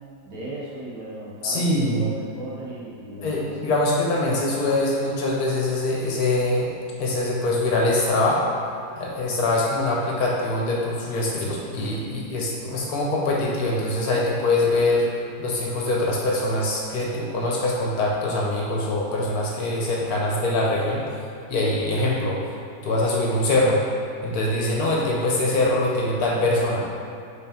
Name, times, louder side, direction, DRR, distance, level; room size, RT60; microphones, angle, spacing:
voice 1, 0.3-3.7, right 1 dB, 70° right, -7 dB, 1.9 m, -36 dB
voice 2, 1.4-2.1 3.2-6.7 7.0-8.4 9.0-15.1 15.4-21.0 21.5-22.5 22.8-23.8 24.2-26.9, left 2 dB, 65° left, -3 dB, 1.3 m, -23 dB
5.5 x 3.9 x 4.3 m, 2.7 s
omnidirectional pair, 1.9 m